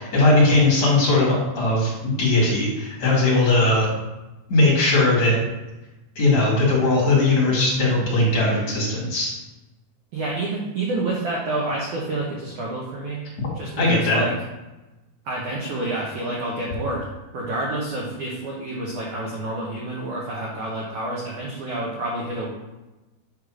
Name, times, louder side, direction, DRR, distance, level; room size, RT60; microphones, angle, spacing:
voice 1, 0.0-3.9 4.5-5.4 6.2-9.3 13.8-14.2, left 2 dB, 45° left, -6 dB, 2.8 m, -19 dB
voice 2, 10.1-13.2 13.5-14.3 15.2-17.1 17.3-22.5, right 2 dB, 80° right, -4 dB, 1.7 m, -28 dB
9.1 x 3.3 x 6.2 m, 1.1 s
omnidirectional pair, 5.2 m